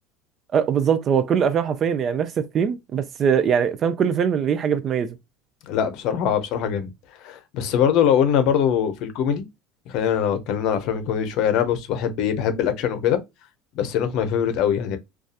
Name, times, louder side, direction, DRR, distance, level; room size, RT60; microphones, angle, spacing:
voice 1, 0.5-5.2, right 7 dB, 35° right, 0.3 m, -22 dB
voice 2, 5.7-6.9 7.2-9.5 9.9-13.2 13.7-15.0, left 8 dB, 60° left, 0.6 m, -22 dB
2.7 x 2.3 x 2.3 m
supercardioid pair, 130°, 0 cm